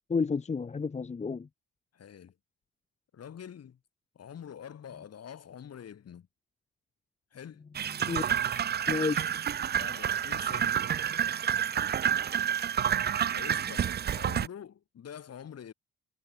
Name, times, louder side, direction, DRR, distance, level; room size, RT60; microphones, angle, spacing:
voice 1, 0.1-1.5 8.0-9.3, left 5 dB, 25° left, 0.8 m, -32 dB
voice 2, 1.9-2.4 3.1-3.8 4.1-6.3 7.3-7.6 9.7-10.8 13.2-15.7, left 8 dB, 55° left, 4.3 m, -46 dB
sound 1, 7.7-14.5, right 9 dB, 35° right, 0.5 m, -29 dB
cardioid pair, 90°, 30 cm